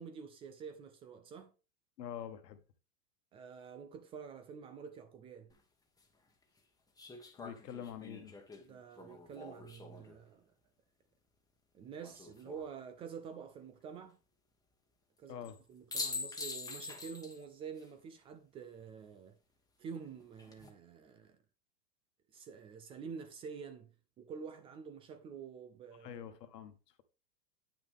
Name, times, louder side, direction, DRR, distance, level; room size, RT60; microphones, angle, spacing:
voice 1, 0.0-1.5 3.3-5.5 8.6-10.5 11.7-14.2 15.2-15.4 15.7-19.3 19.8-21.4 22.3-23.9 24.2-26.2, right 6 dB, 15° right, 0.3 m, -48 dB
voice 2, 2.0-2.6 7.4-8.3 15.3-15.6 26.0-27.0, left 9 dB, 80° left, 1.4 m, -46 dB
sound 1, 5.5-5.6 7.0-10.2 12.0-12.7 15.4-15.6 15.9-17.4 17.8-17.9 20.2-20.7, left 4 dB, 10° left, 1.3 m, -44 dB
9.0 x 6.0 x 3.5 m
hypercardioid pair, 120°, 48 cm